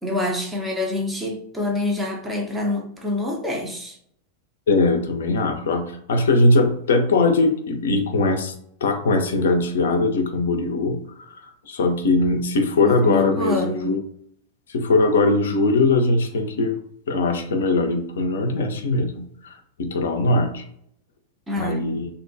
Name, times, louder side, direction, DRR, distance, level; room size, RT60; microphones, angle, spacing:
voice 1, 0.0-4.0 12.8-14.0 21.5-22.0, left 1 dB, 10° right, 0.5 m, -26 dB
voice 2, 4.7-8.5 8.8-11.0 11.7-14.0 14.7-16.7 17.1-20.6 21.6-22.1, left 2 dB, 60° left, 0.4 m, -20 dB
2.5 x 2.1 x 2.5 m
figure-of-eight pair, 90°, 0 cm